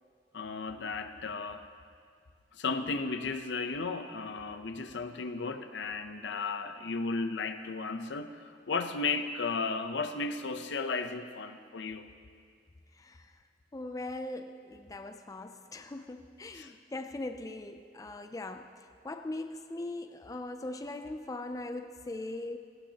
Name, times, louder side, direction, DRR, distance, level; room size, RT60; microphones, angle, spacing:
voice 1, 0.3-1.6 2.5-12.1 16.5-16.7, left 4 dB, 70° left, 8 dB, 0.7 m, -34 dB
voice 2, 13.0-13.3 13.7-18.7 19.0-22.6, left 2 dB, 20° left, 7 dB, 0.4 m, -40 dB
18.5 x 16.0 x 2.9 m, 2.2 s
head